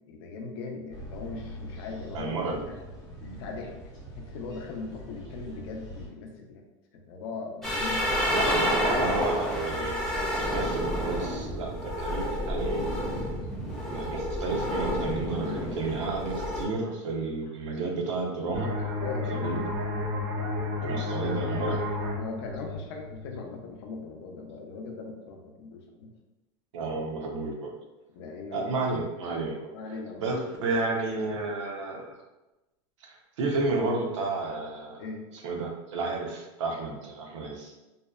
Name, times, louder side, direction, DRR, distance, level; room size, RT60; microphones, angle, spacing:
voice 1, 0.1-2.8 3.2-3.7 4.2-6.6 6.9-8.1 19.0-19.6 22.2-26.1 28.1-28.7 29.7-30.3 31.0-31.2 35.0-35.3, left 4 dB, 60° left, 2 dB, 0.5 m, -39 dB
sound 1, 0.9-6.1, equal, 25° left, 0.8 m, -43 dB
voice 2, 2.1-2.6 8.3-10.0 10.3-12.8 13.9-18.7 19.3-19.5 20.8-21.8 26.7-27.7 28.5-29.7 30.2-32.0 33.1-35.0 35.4-37.7, right 3 dB, 90° right, 0 dB, 0.6 m, -31 dB
sound 2, 7.6-16.7, equal, ahead, 0.4 m, -29 dB
sound 3, 18.5-23.9, left 2 dB, 45° right, 0.5 m, -32 dB
2.6 x 2.1 x 2.3 m, 1.0 s
supercardioid pair, 150°, 15 cm